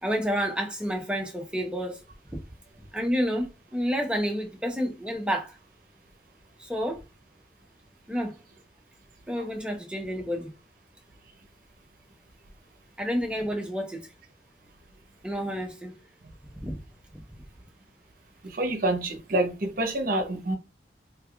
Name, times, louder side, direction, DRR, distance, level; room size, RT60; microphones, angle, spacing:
voice 1, 0.0-2.0 2.9-3.5 3.7-5.6 6.6-7.0 8.1-8.4 9.3-10.5 13.0-14.1 15.2-15.9 16.6-16.8 17.1-17.2, equal, 5° right, 0.8 m, -29 dB
voice 2, 18.4-20.6, right 1 dB, 50° right, 0.8 m, -27 dB
3.4 x 3.4 x 2.3 m
head